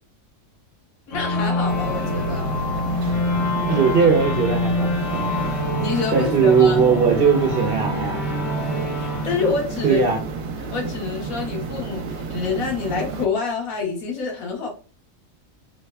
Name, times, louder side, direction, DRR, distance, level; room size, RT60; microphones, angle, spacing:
voice 1, 1.1-2.6 5.8-6.8 8.9-10.0 10.6-14.7, left 5 dB, 85° left, 1 dB, 1.4 m, -27 dB
sound 1, 1.1-10.4, left 2 dB, 65° left, 1.5 m, -26 dB
sound 2, 1.7-13.3, right 4 dB, 75° right, 1.0 m, -31 dB
voice 2, 3.0-5.3 6.1-8.2 9.8-10.2, right 6 dB, 55° right, 2 dB, 0.7 m, -19 dB
3.4 x 2.2 x 3.2 m, 0.37 s
omnidirectional pair, 1.4 m